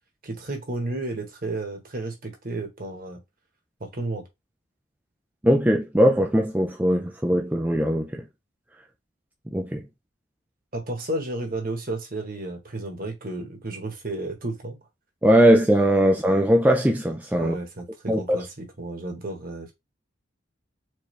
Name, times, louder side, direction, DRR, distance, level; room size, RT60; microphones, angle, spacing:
voice 1, 0.2-3.2 3.8-4.2 10.7-14.8 17.4-19.7, right 2 dB, 45° right, 1.3 m, -32 dB
voice 2, 5.4-8.2 9.5-9.8 15.2-17.6 18.1-18.2, equal, 10° right, 0.4 m, -20 dB
4.6 x 2.7 x 3.2 m
head